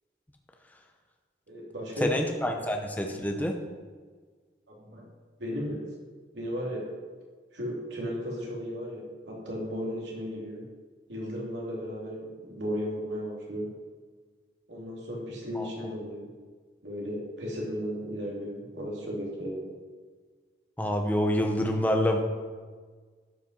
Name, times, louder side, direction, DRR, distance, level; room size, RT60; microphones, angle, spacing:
voice 1, 1.5-2.3 2.6-2.7 4.7-5.1 5.4-5.9 6.3-6.9 7.5-10.6 11.1-13.7 14.7-16.3 16.8-19.7, equal, 90° right, -2 dB, 2.6 m, -35 dB
voice 2, 2.0-3.5 15.6-15.7 20.8-22.2, equal, 10° left, 3 dB, 0.8 m, -27 dB
12.0 x 5.5 x 5.4 m, 1.5 s
head